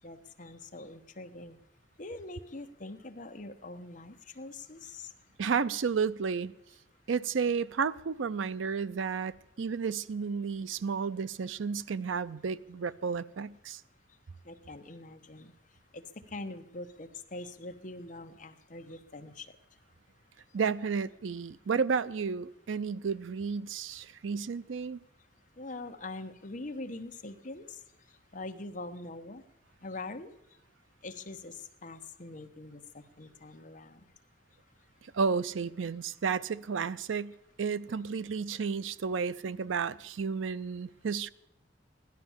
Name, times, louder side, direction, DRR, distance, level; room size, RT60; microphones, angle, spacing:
voice 1, 0.0-1.6 2.0-5.1 14.4-15.5 15.9-19.6 25.6-27.8 28.1-29.4 29.8-30.3 31.0-34.1, left 2 dB, 40° left, 6 dB, 1.1 m, -43 dB
voice 2, 5.4-6.5 7.1-13.8 20.5-25.0 35.1-37.3 37.6-41.3, right 5 dB, 85° right, 16 dB, 0.5 m, -32 dB
16.0 x 11.5 x 7.2 m, 0.86 s
head